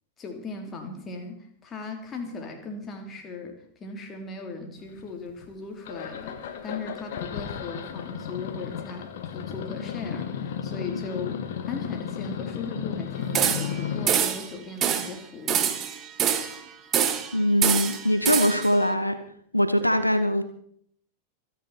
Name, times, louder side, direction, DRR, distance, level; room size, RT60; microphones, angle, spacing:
voice 1, 0.2-15.8, left 3 dB, 25° left, 3 dB, 3.6 m, -38 dB
sound 1, 5.0-5.5 5.9-14.1, left 8 dB, 55° left, 1.7 m, -34 dB
sound 2, 13.3-13.8 14.1-14.5 14.8-15.1 15.5-16.6 16.9-17.3 17.6-18.7, right 9 dB, 30° right, 1.7 m, -25 dB
voice 2, 17.3-19.2 19.5-20.4, equal, 90° left, 10 dB, 1.1 m, -22 dB
27.0 x 10.0 x 4.4 m, 0.64 s
figure-of-eight pair, 90°, 0 cm